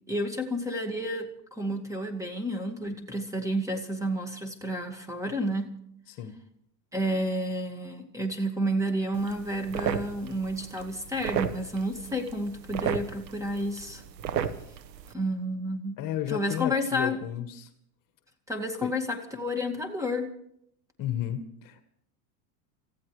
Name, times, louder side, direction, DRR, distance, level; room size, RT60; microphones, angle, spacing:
voice 1, 0.1-5.7 6.9-14.0 15.1-16.0 16.3-17.2 18.5-20.3, equal, 5° right, 4 dB, 2.1 m, -30 dB
sound 1, 9.1-15.1, right 9 dB, 85° right, 1.3 m, -34 dB
voice 2, 16.0-17.7 18.8-18.9 21.0-21.8, left 11 dB, 40° left, 9 dB, 1.4 m, -33 dB
29.5 x 15.0 x 3.3 m, 0.73 s
hypercardioid pair, 105°, 49 cm